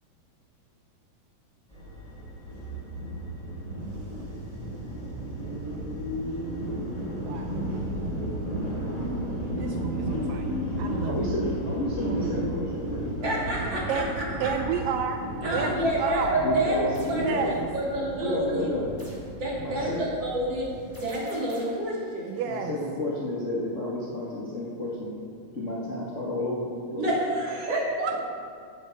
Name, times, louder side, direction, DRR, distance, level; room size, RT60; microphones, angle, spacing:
london-aldgate-east-tube-station-train-arrives-and-departs, 1.7-21.0, right 1 dB, 10° left, 2.5 m, -34 dB
voice 1, 7.2-7.6 9.5-11.2 13.9-14.1 14.4-15.3 15.5-16.4 17.2-17.7 22.3-22.8 27.7-28.1, right 7 dB, 80° right, 5 dB, 2.1 m, -31 dB
voice 2, 11.0-13.4 16.4-17.5 18.2-18.9 19.6-20.0 22.4-25.1 25.5-27.1, left 1 dB, 80° left, -7 dB, 0.6 m, -31 dB
voice 3, 13.2-14.5 15.4-16.8 17.0-18.7 19.4-22.3 27.0-28.1, right 1 dB, 35° right, -6 dB, 2.9 m, -28 dB
sound 1, 16.9-17.2 19.0-19.3 20.9-21.9, equal, 10° right, 0.9 m, -49 dB
15.0 x 8.4 x 4.1 m, 2.1 s
omnidirectional pair, 4.2 m